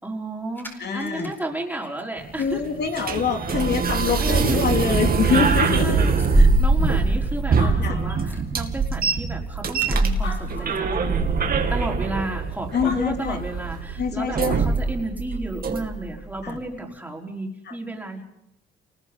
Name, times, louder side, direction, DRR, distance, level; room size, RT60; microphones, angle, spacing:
voice 1, 0.0-2.6 2.9-3.1 4.2-4.7 5.8-11.2 11.7-18.2, right 1 dB, 10° right, -1 dB, 4.8 m, -32 dB
sound 1, 0.6-1.3 1.8-2.0 2.4-2.5 3.2-3.5 3.8-4.0 4.3-4.4 6.2-12.1 12.4-12.5 12.8-12.9 16.5-16.6, right 1 dB, 10° left, 4.5 m, -24 dB
voice 2, 0.8-1.3 2.4-6.0 6.3-6.5 7.8-8.0 12.7-13.4 14.0-14.6 16.4-16.6, left 6 dB, 55° left, 4 dB, 3.4 m, -25 dB
sound 2, 2.2-16.2, right 5 dB, 50° right, 2.4 m, -24 dB
Animal, 7.1-7.2 7.4-8.8 9.5-9.6 10.1-11.1 12.6-12.7 12.8-13.8, left 3 dB, 75° left, 5.5 m, -38 dB
28.5 x 20.0 x 5.5 m, 0.79 s
cardioid pair, 90°, 20 cm